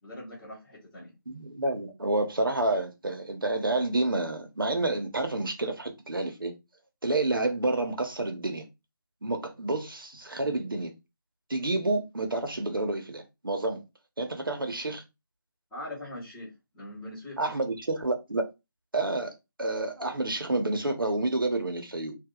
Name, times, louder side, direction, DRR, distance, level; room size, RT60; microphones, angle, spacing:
voice 1, 0.0-1.1 15.7-17.5, left 1 dB, 5° left, 1.4 m, -42 dB
voice 2, 1.3-6.5 7.0-8.7 9.2-10.9 11.5-13.8 14.2-15.0 17.4-18.5 18.9-19.3 19.6-22.2, right 2 dB, 75° right, 1.2 m, -29 dB
2.9 x 2.7 x 3.9 m
figure-of-eight pair, 165°, 12 cm